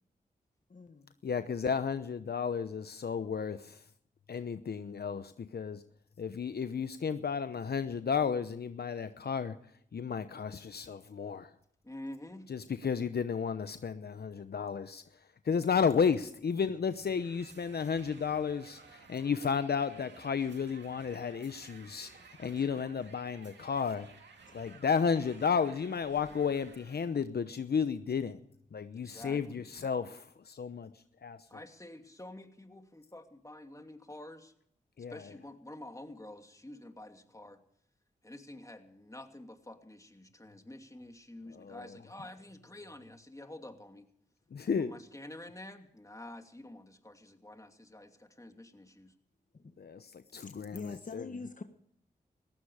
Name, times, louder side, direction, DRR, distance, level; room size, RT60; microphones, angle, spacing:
voice 1, 0.7-1.1 24.5-24.6 42.2-42.3 49.5-49.8 50.4-51.6, left 3 dB, 45° left, 7 dB, 1.4 m, -45 dB
voice 2, 1.2-3.8 4.3-5.8 6.2-9.5 9.9-11.5 12.5-15.0 15.4-24.1 24.5-28.4 28.7-30.9 31.2-31.4 35.0-35.2 41.5-41.9 44.5-44.9 49.8-51.2, left 6 dB, 65° left, 11 dB, 0.9 m, -33 dB
voice 3, 11.8-12.5 28.9-29.7 31.5-34.5 35.1-37.6 38.2-44.1 44.8-49.1, left 1 dB, 20° left, 5 dB, 2.8 m, -48 dB
sound 1, 16.8-27.2, right 5 dB, 80° right, 2.4 m, -56 dB
19.0 x 15.5 x 4.9 m, 0.68 s
cardioid pair, 40°, 18 cm